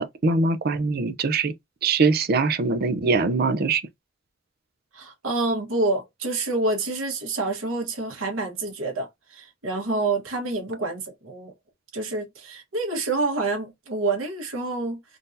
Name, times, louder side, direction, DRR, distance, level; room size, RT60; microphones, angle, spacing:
voice 1, 0.0-1.5 1.8-3.8, right 4 dB, 50° right, 0.5 m, -22 dB
voice 2, 4.9-11.5 11.9-15.2, right 2 dB, 90° right, 1.3 m, -27 dB
3.7 x 2.7 x 2.5 m
head